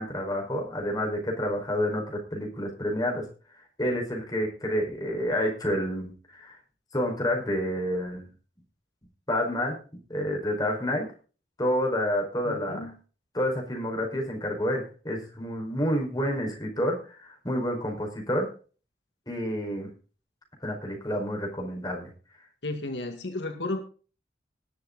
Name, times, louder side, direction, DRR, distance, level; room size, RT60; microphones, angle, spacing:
voice 1, 0.0-3.2 3.8-6.5 6.9-8.2 9.3-9.8 10.1-11.0 11.6-12.9 13.3-18.5 19.3-19.9 20.6-22.1, equal, 20° left, 1 dB, 4.9 m, -29 dB
voice 2, 12.4-12.9 22.6-23.8, left 2 dB, 80° left, 6 dB, 1.9 m, -33 dB
20.0 x 7.3 x 4.0 m, 0.37 s
head